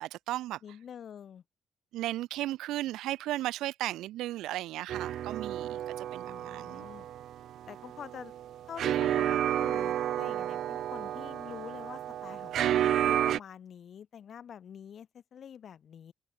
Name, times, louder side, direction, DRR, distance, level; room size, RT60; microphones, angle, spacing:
voice 1, 0.0-0.6 1.9-6.9, right 15 dB, 90° right, 1.5 m, -35 dB
voice 2, 0.6-1.4 6.2-7.1 7.7-8.3 8.7-16.1, left 8 dB, 60° left, 3.8 m, -46 dB
sound 1, 4.9-13.4, right 11 dB, 75° right, 0.9 m, -31 dB
cardioid pair, 90°, 0 cm